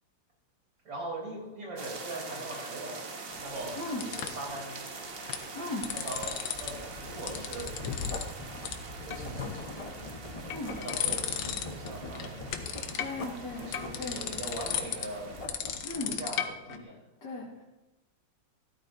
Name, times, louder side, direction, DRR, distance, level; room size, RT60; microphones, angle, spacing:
voice 1, 0.8-3.1 3.4-4.8 5.9-7.8 9.0-10.4 10.8-15.3 15.9-17.0, right 2 dB, 75° right, -2 dB, 4.0 m, -41 dB
sound 1, 1.8-15.5, right 3 dB, 40° right, 1.0 m, -44 dB
sound 2, 3.3-4.5 5.1-5.4 5.7-6.7 7.0-8.3 8.6-8.7 9.1-9.7 10.2-11.9 12.1-16.8, left 9 dB, 90° left, 1.6 m, -35 dB
voice 2, 5.5-5.9 10.5-10.7 13.0-13.7 14.0-14.4 15.8-16.1 17.2-17.6, left 2 dB, 65° left, -5 dB, 2.2 m, -37 dB
Writing, 6.5-15.9, left 1 dB, 25° left, 0.8 m, -43 dB
14.5 x 13.0 x 2.6 m, 1.0 s
omnidirectional pair, 2.0 m